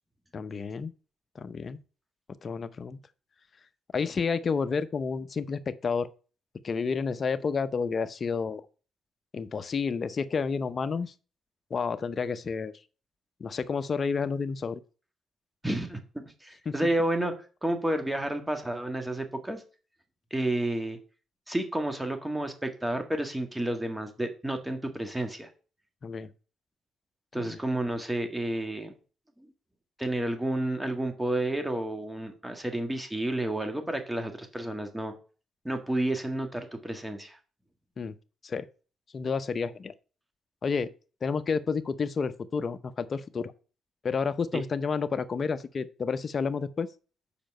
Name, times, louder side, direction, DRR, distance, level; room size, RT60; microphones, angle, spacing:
voice 1, 0.3-0.9 1.3-1.8 2.4-3.0 3.9-6.1 6.6-8.6 9.3-11.1 11.7-12.7 13.4-14.8 16.7-16.8 26.0-26.3 27.3-27.6 38.0-38.1 38.4-38.7 39.1-39.9 40.6-40.9 41.2-43.5 44.0-46.9, left 5 dB, 40° left, 0.7 m, -30 dB
voice 2, 15.6-17.3 17.6-19.6 20.3-21.0 21.5-25.5 27.3-28.9 29.4-29.5 30.0-35.1 35.6-37.4 44.5-44.6, right 1 dB, 10° right, 1.7 m, -31 dB
7.0 x 5.1 x 6.4 m
cardioid pair, 90°, 0 cm